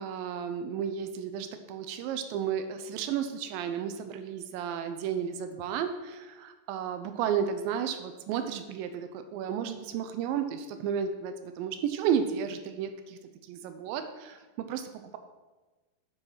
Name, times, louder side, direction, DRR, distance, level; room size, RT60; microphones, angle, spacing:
voice 1, 0.0-13.2 13.5-15.2, right 8 dB, 85° right, 8 dB, 2.0 m, -33 dB
7.7 x 4.6 x 5.6 m, 1.2 s
omnidirectional pair, 4.7 m